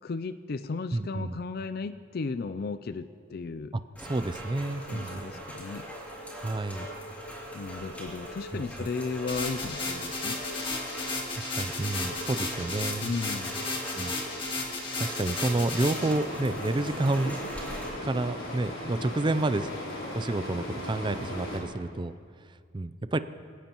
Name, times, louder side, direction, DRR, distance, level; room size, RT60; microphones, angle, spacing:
voice 1, 0.0-3.7 4.8-5.9 7.5-10.4 13.0-13.7, left 4 dB, 50° left, 11 dB, 0.4 m, -35 dB
voice 2, 0.9-1.4 3.7-5.3 6.3-6.9 8.5-8.9 11.3-13.1 14.0-14.1 15.0-17.4 18.0-19.7 20.1-22.1 22.5-23.2, right 2 dB, 25° right, 13 dB, 0.4 m, -30 dB
Rain, 3.9-17.9, right 1 dB, 10° left, 3.2 m, -41 dB
sound 1, 9.3-16.1, left 3 dB, 25° left, 2.0 m, -34 dB
sound 2, 15.9-21.6, left 1 dB, 85° left, 3.8 m, -37 dB
25.5 x 16.5 x 3.0 m, 2.1 s
head